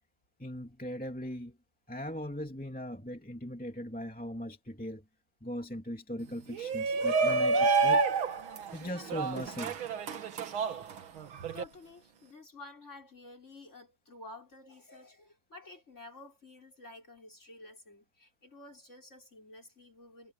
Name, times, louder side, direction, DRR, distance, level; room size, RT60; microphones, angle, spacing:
voice 1, 0.4-1.5 1.9-5.0 5.4-8.0 8.7-9.8, equal, 5° left, 1.8 m, -39 dB
Shout, 6.5-11.6, right 4 dB, 50° right, 1.6 m, -29 dB
voice 2, 11.5-20.3, left 2 dB, 20° left, 6.0 m, -51 dB
omnidirectional pair, 4.1 m